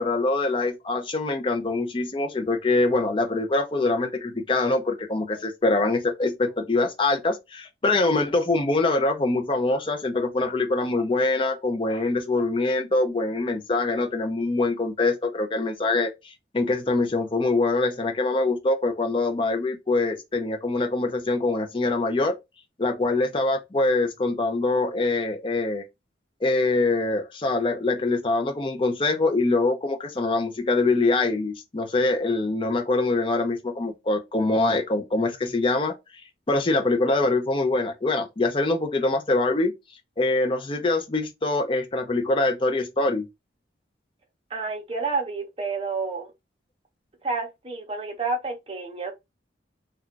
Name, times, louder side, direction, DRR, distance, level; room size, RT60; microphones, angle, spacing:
voice 1, 0.0-22.4 22.8-25.8 26.4-35.9 36.5-39.7 40.2-43.3, left 2 dB, 25° left, 0.5 m, -24 dB
voice 2, 44.5-46.3 47.2-49.1, right 4 dB, 30° right, 0.8 m, -29 dB
2.3 x 2.3 x 3.8 m
head